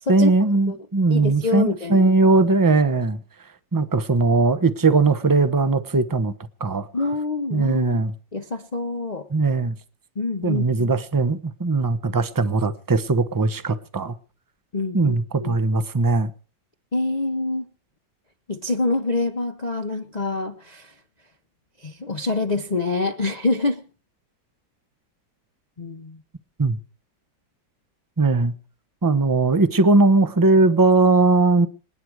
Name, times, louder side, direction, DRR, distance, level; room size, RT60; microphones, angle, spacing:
voice 1, 0.1-3.2 3.7-6.3 6.6-6.9 7.5-8.1 9.3-9.7 10.4-14.1 14.9-16.3 26.6-26.8 28.2-28.5 29.0-31.7, right 3 dB, 20° right, 0.5 m, -19 dB
voice 2, 1.1-2.1 6.9-8.0 8.3-9.3 10.2-10.9 14.7-15.6 16.9-17.7 18.5-20.9 21.8-23.8 25.8-26.2, left 3 dB, 35° left, 0.7 m, -26 dB
27.0 x 9.4 x 4.8 m
omnidirectional pair, 1.9 m